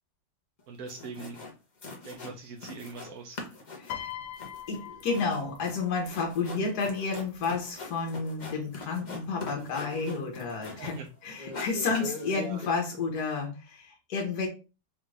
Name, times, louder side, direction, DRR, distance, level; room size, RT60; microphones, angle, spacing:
sound 1, 0.6-0.7 0.9-1.5 1.8-3.1 3.4-11.1 11.4-12.7, left 3 dB, 45° left, 0.6 m, -42 dB
voice 1, 0.7-1.4 2.0-3.4 10.7-11.0 12.3-12.6, right 4 dB, 65° right, 2 dB, 0.9 m, -42 dB
voice 2, 3.8-4.1 4.7-14.5, left 4 dB, 65° left, 0 dB, 1.4 m, -31 dB
Piano, 3.9-6.3 7.3-7.6, left 10 dB, 85° left, 1.3 m, -42 dB
4.3 x 2.4 x 3.2 m, 0.31 s
omnidirectional pair, 1.9 m